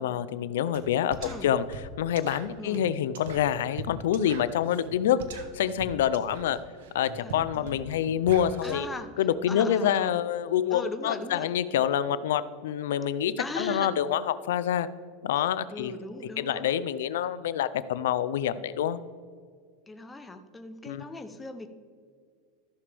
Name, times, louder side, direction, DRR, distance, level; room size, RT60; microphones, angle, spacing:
voice 1, 0.0-6.6 6.9-8.9 9.2-14.9 15.2-15.9 16.4-19.0 20.9-21.1, left 10 dB, 90° left, 15 dB, 0.4 m, -27 dB
sound 1, 0.7-0.9 1.1-8.7, right 3 dB, 85° right, 1.1 m, -41 dB
voice 2, 7.2-8.1 8.6-9.2 9.5-10.1 10.7-11.5 13.4-13.9 15.7-16.7 19.9-21.7, left 2 dB, 10° left, 7 dB, 0.7 m, -39 dB
14.0 x 6.8 x 3.4 m, 2.1 s
supercardioid pair, 150°, 0 cm